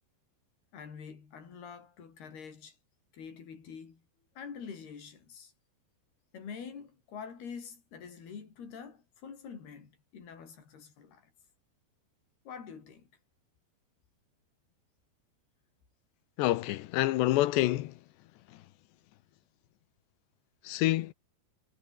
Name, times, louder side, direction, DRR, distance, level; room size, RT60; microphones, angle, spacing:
voice 1, 0.7-2.8 3.1-4.0 4.4-5.5 6.3-11.3 12.5-13.1, left 6 dB, 65° left, 6.8 m, -46 dB
voice 2, 16.4-17.9 20.6-21.1, left 16 dB, 85° left, 3.1 m, -27 dB
omnidirectional pair, 5.0 m